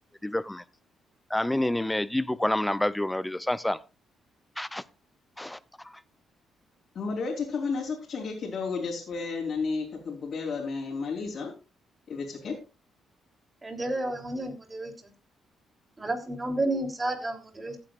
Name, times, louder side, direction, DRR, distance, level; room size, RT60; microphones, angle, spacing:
voice 1, 0.2-0.6 1.3-3.8 4.6-4.8 5.4-5.6, left 1 dB, 10° left, 0.5 m, -28 dB
voice 2, 6.9-11.5 12.1-12.5, left 4 dB, 55° left, 4.3 m, -32 dB
voice 3, 13.6-14.9 16.0-17.8, right 2 dB, 25° right, 3.4 m, -31 dB
15.5 x 9.8 x 2.5 m
cardioid pair, 90°, 0 cm